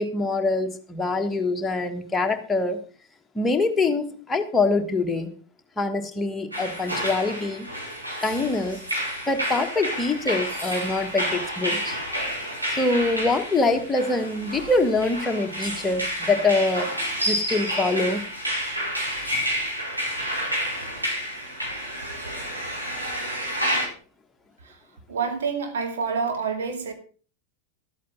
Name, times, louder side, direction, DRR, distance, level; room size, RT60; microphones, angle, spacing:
voice 1, 0.0-2.8 3.3-5.3 5.8-7.7 8.2-8.8 9.3-12.0 12.7-16.9 17.3-18.2, left 3 dB, 10° left, 1.5 m, -24 dB
sound 1, 6.5-23.9, equal, 90° right, 4.8 m, -30 dB
voice 2, 25.1-26.9, right 5 dB, 60° right, 2.4 m, -27 dB
12.5 x 8.5 x 5.5 m
figure-of-eight pair, 90°, 0 cm